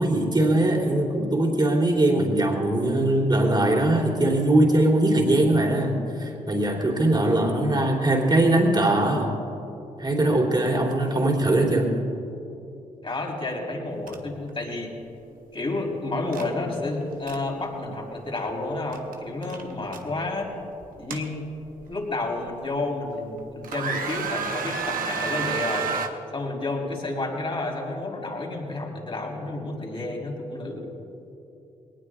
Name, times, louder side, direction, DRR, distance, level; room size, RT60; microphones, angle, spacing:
voice 1, 0.0-9.4 10.0-12.0, right 1 dB, 30° right, -1 dB, 3.3 m, -21 dB
voice 2, 7.0-7.6 13.0-14.9 15.5-20.5 21.0-21.5 21.9-25.9 26.3-30.9, left 2 dB, 35° left, -1 dB, 4.0 m, -30 dB
sound 1, 14.1-14.2 14.5-14.7 16.3-16.5 17.0-17.4 18.9-19.1 19.4-20.0 20.8-21.8 22.4-22.5 23.1-23.4 23.6-26.1, right 6 dB, 70° right, 1.2 m, -30 dB
20.0 x 19.0 x 2.5 m, 2.9 s
supercardioid pair, 55°, 15 cm